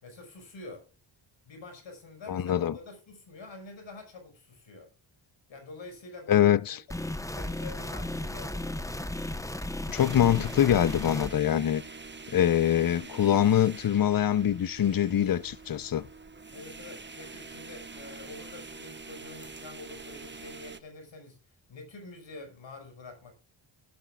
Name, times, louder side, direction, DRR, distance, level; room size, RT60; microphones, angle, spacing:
voice 1, 0.0-0.9 1.4-4.9 5.5-8.9 16.5-23.3, left 2 dB, 65° left, 5.5 m, -47 dB
voice 2, 2.3-2.8 6.3-6.8 9.9-11.8 12.3-16.0, left 10 dB, 45° left, 0.8 m, -24 dB
sound 1, 6.9-11.3, left 1 dB, 5° left, 1.0 m, -35 dB
sound 2, 9.9-20.8, right 4 dB, 20° right, 1.2 m, -45 dB
17.0 x 11.5 x 2.4 m
cardioid pair, 70°, 48 cm